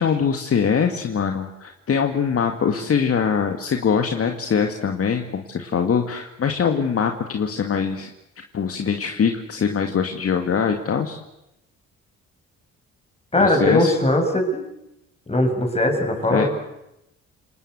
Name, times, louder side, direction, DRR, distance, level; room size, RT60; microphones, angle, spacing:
voice 1, 0.0-8.1 8.5-11.2 13.4-13.9 16.3-16.4, left 6 dB, 50° left, 5 dB, 2.2 m, -22 dB
voice 2, 13.3-14.6 15.3-16.5, left 1 dB, 20° left, 3 dB, 7.0 m, -20 dB
29.0 x 19.5 x 8.2 m, 0.86 s
cardioid pair, 90°, 30 cm